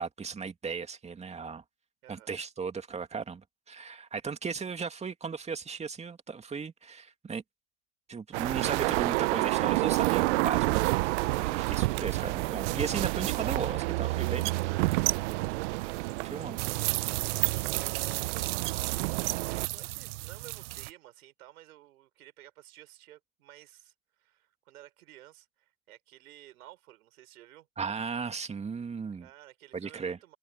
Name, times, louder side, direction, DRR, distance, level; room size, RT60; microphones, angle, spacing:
voice 1, 0.0-1.6 2.1-7.4 8.1-10.9 11.4-14.5 16.2-16.6 27.8-29.3 29.7-30.2, right 5 dB, 15° right, 2.4 m, -36 dB
sound 1, 8.3-20.9, right 22 dB, 50° right, 0.7 m, -29 dB
voice 2, 16.6-18.8 19.7-27.7 29.2-30.4, right 14 dB, 70° right, 5.5 m, -54 dB
hypercardioid pair, 110°, 46 cm